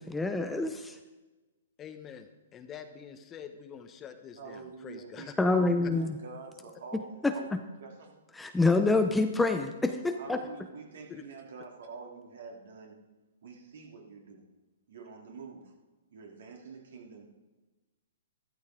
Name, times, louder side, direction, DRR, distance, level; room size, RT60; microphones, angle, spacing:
voice 1, 0.1-1.0 5.4-6.1 6.9-7.6 8.4-10.4, left 3 dB, 5° left, 7 dB, 0.7 m, -27 dB
voice 2, 1.8-5.4 11.1-11.2, left 8 dB, 25° left, 7 dB, 1.0 m, -46 dB
voice 3, 4.4-7.5 7.8-8.2 10.2-13.0 13.4-14.5 14.9-15.7 16.1-17.3, right 5 dB, 70° right, -1 dB, 3.2 m, -46 dB
13.0 x 12.5 x 3.9 m, 1.2 s
hypercardioid pair, 130°, 0 cm